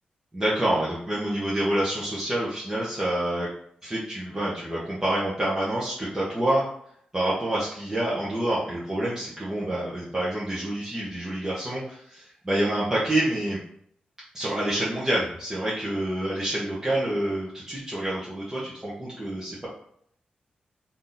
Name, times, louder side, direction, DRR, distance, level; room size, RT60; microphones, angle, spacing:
voice 1, 0.3-3.5 3.8-6.6 7.1-13.6 14.3-19.7, right 1 dB, 20° right, -8 dB, 1.0 m, -27 dB
3.5 x 2.8 x 4.0 m, 0.67 s
wide cardioid pair, 95°, 3 cm